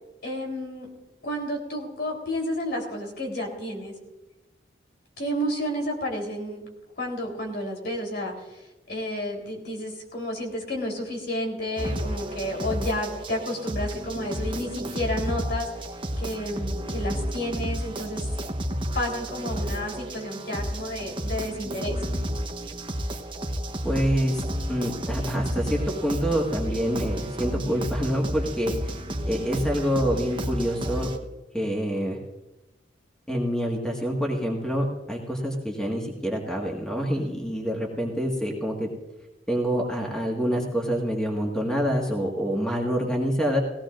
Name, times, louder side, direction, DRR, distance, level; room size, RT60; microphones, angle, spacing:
voice 1, 0.2-0.9 1.2-3.9 5.2-6.7 7.0-8.3 8.9-15.7 16.2-18.3 18.9-22.0, left 1 dB, 65° left, 1 dB, 3.8 m, -31 dB
sound 1, 11.8-31.2, equal, 30° right, 1.0 m, -31 dB
voice 2, 23.8-24.4 24.7-28.9 29.3-31.1 31.5-32.2 33.3-38.9 39.5-43.6, equal, 5° left, -1 dB, 1.8 m, -26 dB
18.5 x 16.5 x 2.6 m, 1.0 s
head